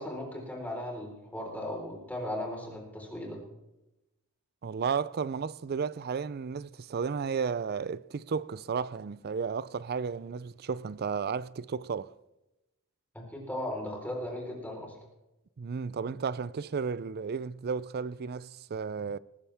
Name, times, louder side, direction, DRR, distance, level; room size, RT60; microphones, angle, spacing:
voice 1, 0.0-3.4 13.1-15.0, left 1 dB, 5° left, 4.2 m, -37 dB
voice 2, 4.6-12.1 15.6-19.2, right 5 dB, 45° right, 0.4 m, -33 dB
20.0 x 14.5 x 3.5 m
head